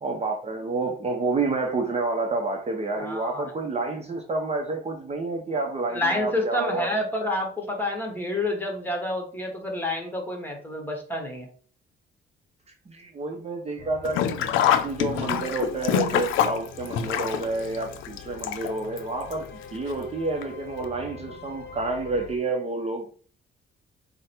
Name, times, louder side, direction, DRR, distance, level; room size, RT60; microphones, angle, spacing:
voice 1, 0.0-6.9 12.9-23.1, right 3 dB, 30° right, 2 dB, 0.8 m, -29 dB
voice 2, 3.0-3.5 5.9-11.5 14.5-14.8, left 1 dB, 10° left, 2 dB, 1.4 m, -29 dB
sound 1, 13.8-22.4, left 5 dB, 60° left, 0.8 m, -44 dB
Sink (filling or washing), 14.0-19.0 19.3-19.4 20.4-20.5 20.8-20.9, left 10 dB, 90° left, 0.5 m, -25 dB
4.7 x 2.2 x 4.4 m, 0.43 s
cardioid pair, 90°, 20 cm